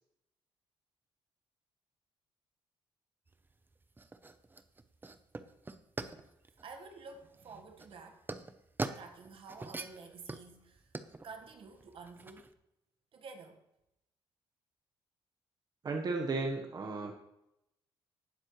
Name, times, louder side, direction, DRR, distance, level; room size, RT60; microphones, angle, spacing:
sound 1, 3.3-12.5, right 3 dB, 20° right, 0.7 m, -44 dB
voice 1, 6.6-8.2 8.9-10.9 11.2-12.5 13.1-13.6, right 4 dB, 60° right, 1.6 m, -50 dB
voice 2, 15.8-17.1, right 3 dB, 40° right, 1.3 m, -34 dB
18.0 x 7.4 x 3.2 m
cardioid pair, 95°, 10 cm